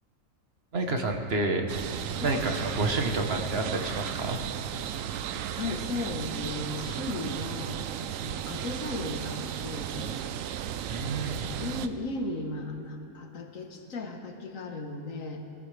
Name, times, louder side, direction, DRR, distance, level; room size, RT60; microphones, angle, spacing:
voice 1, 0.7-1.7 2.0-4.4 10.9-11.4, right 2 dB, 50° right, 4 dB, 1.3 m, -29 dB
sound 1, 1.7-11.9, right 9 dB, 85° right, 1.0 m, -35 dB
voice 2, 5.6-7.9 8.2-10.2 11.2-15.4, left 2 dB, 85° left, 3 dB, 1.7 m, -36 dB
21.0 x 14.0 x 3.3 m, 2.9 s
omnidirectional pair, 1.4 m